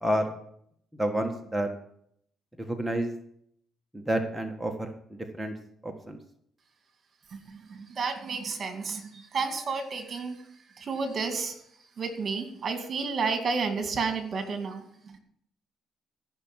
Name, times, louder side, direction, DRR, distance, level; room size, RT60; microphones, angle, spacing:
voice 1, 1.0-1.7 2.7-3.1 3.9-5.5 5.8-6.2, right 1 dB, 5° right, 2 dB, 1.5 m, -29 dB
voice 2, 7.3-10.5 10.7-11.6 12.0-15.2, right 4 dB, 50° right, 6 dB, 2.3 m, -31 dB
14.5 x 6.0 x 7.3 m, 0.69 s
cardioid pair, 90°, 0 cm